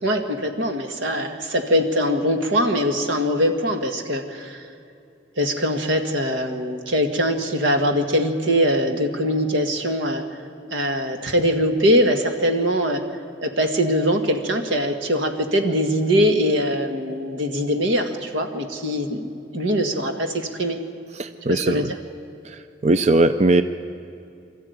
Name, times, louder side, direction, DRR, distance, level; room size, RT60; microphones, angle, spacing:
voice 1, 0.0-4.7 5.4-10.2 10.7-13.0 13.4-20.8 21.5-22.0, equal, 90° right, 6 dB, 2.0 m, -22 dB
voice 2, 21.2-21.8 22.8-23.6, right 2 dB, 35° right, 10 dB, 0.5 m, -18 dB
25.0 x 14.0 x 9.5 m, 2.6 s
head